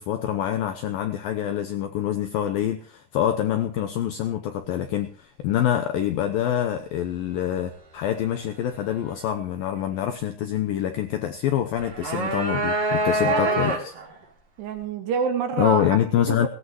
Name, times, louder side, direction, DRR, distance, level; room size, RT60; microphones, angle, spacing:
voice 1, 0.0-13.9 15.6-16.5, left 11 dB, 80° left, 7 dB, 2.1 m, -26 dB
sound 1, 11.8-14.1, right 1 dB, 40° right, 3.2 m, -25 dB
voice 2, 13.2-13.6 14.6-15.9 16.3-16.5, right 6 dB, 70° right, 6 dB, 3.8 m, -27 dB
19.5 x 16.5 x 3.0 m, 0.39 s
omnidirectional pair, 5.2 m